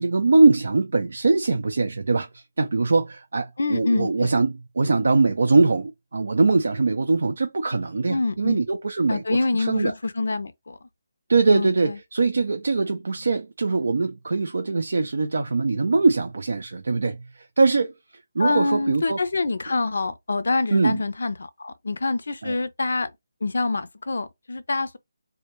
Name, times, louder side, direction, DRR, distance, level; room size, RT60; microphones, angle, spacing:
voice 1, 0.0-9.2 9.5-9.9 11.3-19.2 20.7-21.0 22.4-22.6, right 3 dB, 70° right, 0.4 m, -22 dB
voice 2, 3.6-4.3 8.1-8.6 9.1-10.8 11.5-12.0 18.4-23.1 23.4-25.0, left 3 dB, 75° left, 0.4 m, -26 dB
2.1 x 2.1 x 2.9 m
figure-of-eight pair, 165°, 0 cm